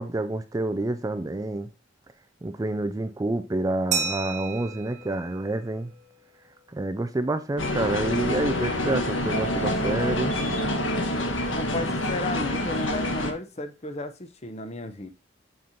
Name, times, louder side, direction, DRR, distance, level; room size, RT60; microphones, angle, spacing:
voice 1, 0.0-1.7 2.4-5.9 6.7-10.3, right 2 dB, 15° right, 0.3 m, -28 dB
Glass, 3.9-6.4, right 5 dB, 40° right, 1.2 m, -33 dB
sound 1, 7.6-13.3, left 1 dB, 75° left, 1.4 m, -27 dB
voice 2, 11.5-15.1, left 2 dB, 35° left, 0.7 m, -34 dB
7.7 x 5.3 x 2.7 m
head